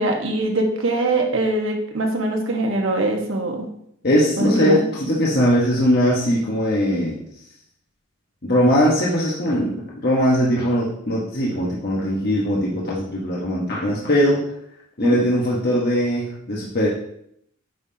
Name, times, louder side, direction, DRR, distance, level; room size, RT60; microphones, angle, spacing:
voice 1, 0.0-3.7 4.4-4.8 15.0-15.2, right 2 dB, 75° right, 2 dB, 1.3 m, -22 dB
voice 2, 4.0-7.2 8.4-14.4 15.0-16.9, equal, 50° left, -5 dB, 1.2 m, -20 dB
9.1 x 5.6 x 2.8 m, 0.72 s
head